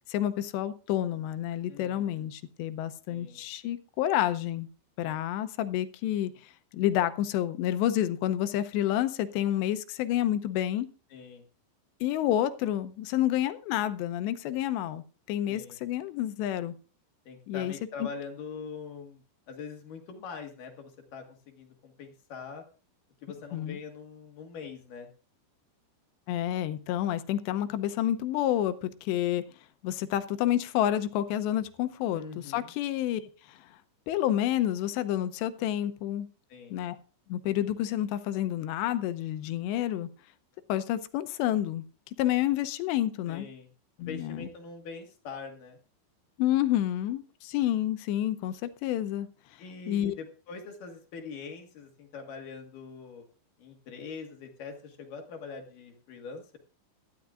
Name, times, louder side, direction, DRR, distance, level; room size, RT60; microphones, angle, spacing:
voice 1, 0.1-4.7 5.0-6.3 6.7-10.9 12.0-16.7 17.5-17.7 23.5-23.8 26.3-29.4 29.8-33.2 33.5-33.6 34.1-36.3 36.7-37.0 37.3-40.1 40.7-41.9 42.2-43.5 44.0-44.5 46.4-49.3 49.9-50.1, left 12 dB, 80° left, 11 dB, 2.9 m, -29 dB
voice 2, 1.7-2.3 3.1-3.4 5.0-5.2 11.1-11.4 15.5-15.8 17.3-19.2 19.5-21.2 21.6-22.6 23.2-25.1 32.1-32.7 36.5-36.8 43.3-43.7 44.1-45.8 49.6-53.2 53.6-56.6, left 5 dB, 60° left, 3 dB, 2.7 m, -43 dB
17.5 x 13.0 x 2.5 m, 0.36 s
omnidirectional pair, 5.2 m